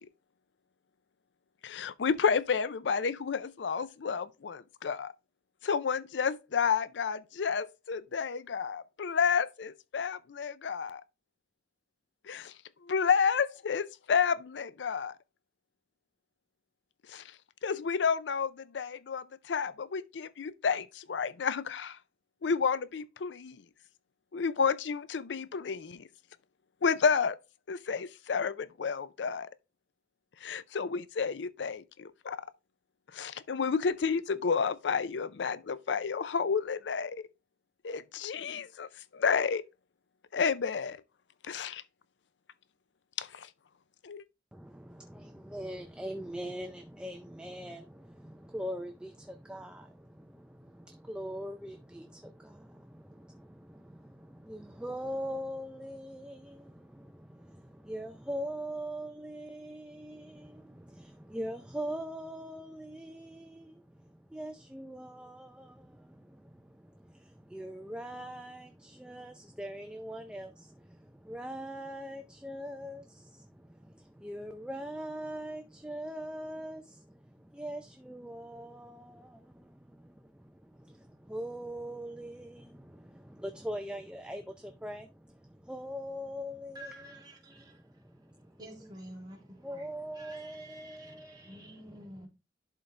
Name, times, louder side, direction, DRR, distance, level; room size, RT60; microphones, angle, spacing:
voice 1, 1.6-5.1 5.6-11.0 12.3-12.5 12.8-15.2 17.1-17.2 17.6-22.0 22.4-23.6 24.3-26.1 26.8-27.4 27.7-29.5 30.4-32.4 33.1-37.3 37.8-39.6 40.3-41.0 41.4-41.8 43.2-43.5 44.0-44.2, left 6 dB, 80° left, 0.5 m, -31 dB
voice 2, 44.5-88.6 89.5-92.0, equal, 5° right, 0.5 m, -42 dB
voice 3, 86.7-87.8 88.2-92.3, right 1 dB, 25° right, 2.5 m, -50 dB
11.0 x 3.9 x 3.3 m
head